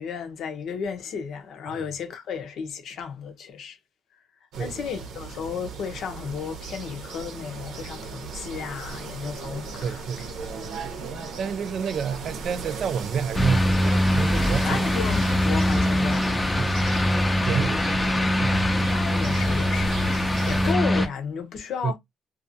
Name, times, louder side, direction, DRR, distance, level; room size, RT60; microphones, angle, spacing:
voice 1, 0.0-3.8 4.6-10.1 11.1-11.3 14.6-16.3 17.5-17.9 18.9-22.0, left 6 dB, 75° left, 0.7 m, -33 dB
sound 1, 4.5-20.7, right 4 dB, 90° right, 0.7 m, -37 dB
voice 2, 9.8-10.3 11.4-14.8 16.6-16.8 17.4-18.1 18.4-18.6 21.8-21.9, right 6 dB, 60° right, 0.4 m, -29 dB
Cemetery in Perth, 13.3-21.1, left 1 dB, 15° left, 0.5 m, -23 dB
2.6 x 2.4 x 2.6 m
cardioid pair, 90°, 0 cm